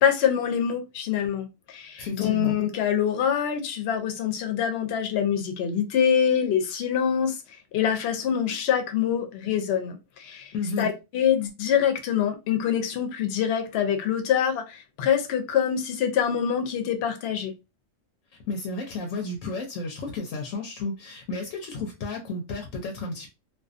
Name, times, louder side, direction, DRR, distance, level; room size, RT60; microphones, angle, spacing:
voice 1, 0.0-7.4 7.7-17.5, left 8 dB, 60° left, 0.7 m, -25 dB
voice 2, 2.0-2.6 10.5-10.9 18.4-23.3, left 3 dB, 90° left, 1.0 m, -32 dB
2.5 x 2.3 x 2.4 m
omnidirectional pair, 1.3 m